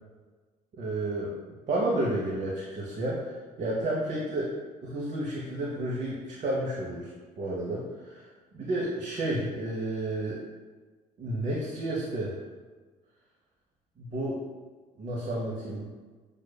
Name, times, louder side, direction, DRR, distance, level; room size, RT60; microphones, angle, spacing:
voice 1, 0.7-1.3 1.7-4.5 4.8-8.3 8.5-10.4 11.2-12.3 14.0-14.4 15.0-15.9, right 1 dB, 40° right, -5 dB, 0.8 m, -31 dB
6.2 x 2.4 x 2.2 m, 1.4 s
hypercardioid pair, 50°, 21 cm